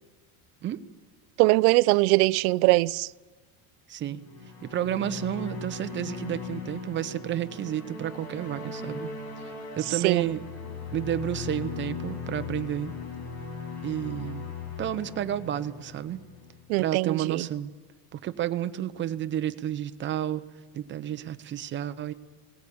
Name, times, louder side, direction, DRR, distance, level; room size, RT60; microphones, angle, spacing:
voice 1, 1.4-3.1 10.0-10.2 16.7-17.4, right 23 dB, 85° right, 0.6 m, -21 dB
voice 2, 3.9-4.3 4.6-9.1 9.8-10.4 10.9-12.9 13.8-14.5 14.8-16.2 16.8-17.7 18.1-20.4 20.7-22.1, right 11 dB, 25° right, 0.8 m, -31 dB
sound 1, 4.2-16.7, left 4 dB, 80° left, 7.4 m, -38 dB
18.5 x 18.0 x 8.6 m
cardioid pair, 155°, 42 cm